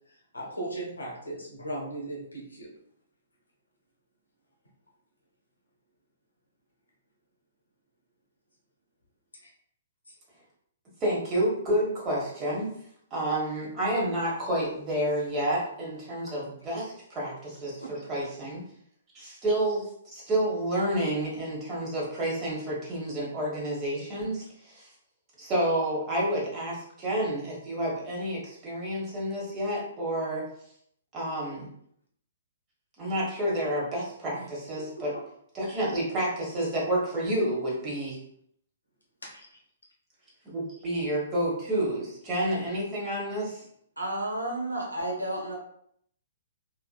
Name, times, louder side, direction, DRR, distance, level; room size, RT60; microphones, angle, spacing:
voice 1, 0.1-2.7 9.4-9.5 10.1-10.2 16.7-16.8 17.8-17.9 34.3-34.4 34.7-35.2 39.2-39.6, right 1 dB, 75° left, -2 dB, 1.1 m, -38 dB
voice 2, 11.0-12.7 13.1-18.6 19.1-24.9 25.4-30.5 31.1-31.7 33.0-35.1 35.5-38.2 40.4-43.6, right 1 dB, 20° right, -4 dB, 1.2 m, -29 dB
voice 3, 44.0-45.5, right 1 dB, 85° right, -3 dB, 1.1 m, -31 dB
3.5 x 2.7 x 2.3 m, 0.68 s
figure-of-eight pair, 120°, 0 cm